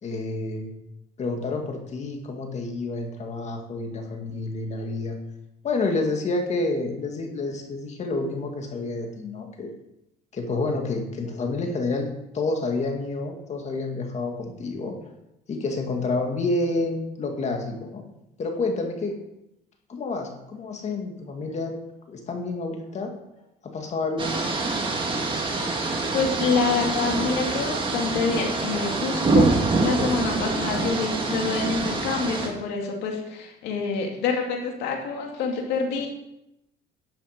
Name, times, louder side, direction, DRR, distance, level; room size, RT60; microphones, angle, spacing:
voice 1, 0.0-0.7 1.2-5.2 5.6-9.7 10.3-12.1 12.3-15.0 15.5-18.0 18.4-19.2 19.9-21.7 22.1-23.1 23.6-24.4, left 3 dB, 40° left, 3 dB, 2.2 m, -29 dB
sound 1, 24.2-32.5, right 3 dB, 30° right, 2.1 m, -25 dB
voice 2, 26.1-36.1, left 4 dB, 85° left, 2 dB, 2.5 m, -27 dB
11.5 x 7.7 x 5.2 m, 0.87 s
cardioid pair, 110°, 17 cm